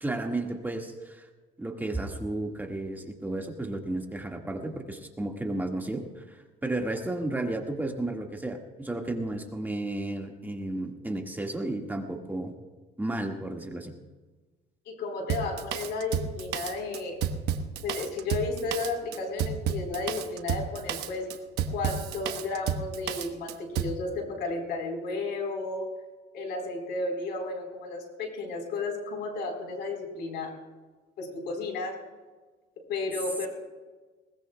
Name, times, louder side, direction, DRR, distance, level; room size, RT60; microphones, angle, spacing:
voice 1, 0.0-1.3 1.6-12.5 13.0-13.9, right 2 dB, 10° right, 2 dB, 1.7 m, -33 dB
voice 2, 14.9-17.2 17.8-21.3 21.7-25.9 26.3-30.5 31.2-32.0 32.9-33.5, left 3 dB, 80° left, 3 dB, 3.9 m, -33 dB
Drum kit, 15.3-24.0, right 8 dB, 80° right, 1.1 m, -31 dB
21.0 x 19.5 x 2.2 m, 1.3 s
cardioid pair, 110°, 17 cm